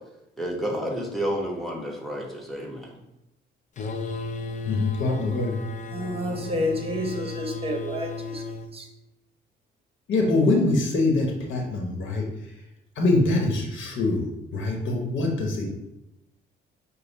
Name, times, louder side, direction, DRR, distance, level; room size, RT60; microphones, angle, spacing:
voice 1, 0.4-3.0, equal, ahead, -1 dB, 1.1 m, -30 dB
sound 1, 3.8-8.7, left 3 dB, 40° left, 0.5 m, -35 dB
voice 2, 4.6-5.6 10.1-12.3 13.0-14.3 14.5-15.8, left 2 dB, 75° left, 0 dB, 1.0 m, -24 dB
voice 3, 5.9-8.4 8.7-8.9, left 1 dB, 30° right, 2 dB, 0.9 m, -29 dB
5.2 x 2.2 x 4.0 m, 0.89 s
cardioid pair, 90°, 20 cm